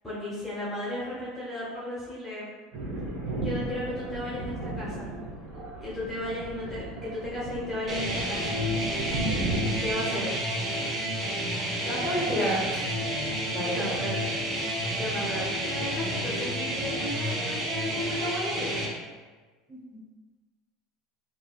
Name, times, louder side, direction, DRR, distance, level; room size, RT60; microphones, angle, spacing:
voice 1, 0.0-2.5 3.4-5.1 5.8-8.6 9.8-10.4 13.7-14.3 14.9-18.8, left 1 dB, 10° left, -9 dB, 1.0 m, -34 dB
Thunder, 2.7-10.0, right 1 dB, 65° right, 0.9 m, -34 dB
sound 1, 7.9-18.9, equal, 30° right, 0.8 m, -30 dB
voice 2, 11.8-12.9 13.5-13.9 19.7-20.0, equal, 10° right, -7 dB, 1.3 m, -30 dB
3.7 x 2.1 x 2.4 m, 1.3 s
hypercardioid pair, 95°, 0 cm